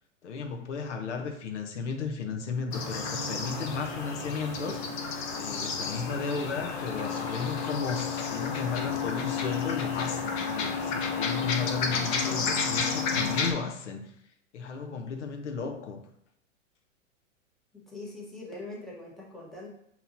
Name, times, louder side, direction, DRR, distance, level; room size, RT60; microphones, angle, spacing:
voice 1, 0.2-4.8 5.4-14.1 14.5-16.0, left 5 dB, 65° left, 4 dB, 0.7 m, -34 dB
sound 1, 2.7-13.5, left 5 dB, 20° left, 0.4 m, -31 dB
voice 2, 17.7-19.7, left 2 dB, ahead, -5 dB, 0.9 m, -42 dB
5.5 x 2.9 x 2.6 m, 0.73 s
hypercardioid pair, 110°, 39 cm